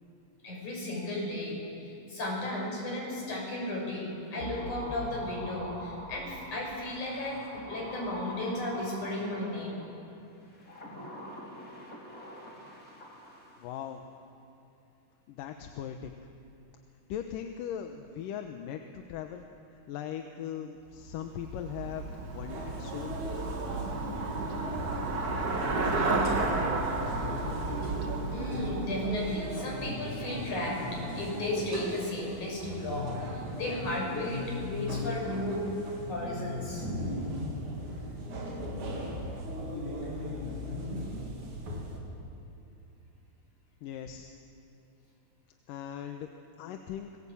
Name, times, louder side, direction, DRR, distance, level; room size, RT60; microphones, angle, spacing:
voice 1, 0.4-9.8 28.3-35.7 36.1-36.9, left 1 dB, 60° left, -2 dB, 7.9 m, -35 dB
sound 1, 4.4-9.8 10.5-13.7 14.0-14.1, equal, 25° left, 4.4 m, -44 dB
voice 2, 13.6-14.0 15.3-16.2 17.1-19.5 19.7-23.2 43.8-44.3 45.7-47.2, left 9 dB, 80° left, 5 dB, 2.6 m, -39 dB
Traffic noise roadway noise / Bicycle, 20.9-30.1, right 3 dB, 35° right, 1.9 m, -33 dB
sound 2, 22.5-42.0, equal, 60° right, 4.7 m, -37 dB
26.5 x 20.5 x 8.6 m, 2.7 s
omnidirectional pair, 3.9 m